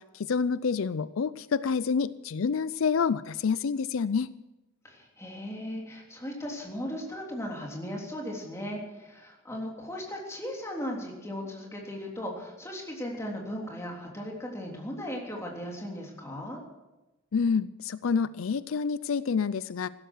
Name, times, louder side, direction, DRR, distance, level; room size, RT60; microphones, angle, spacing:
voice 1, 0.0-4.3 17.3-19.9, left 5 dB, 80° left, 16 dB, 0.5 m, -28 dB
voice 2, 4.8-16.6, equal, 15° left, -1 dB, 3.4 m, -37 dB
16.0 x 13.0 x 6.3 m, 1.0 s
head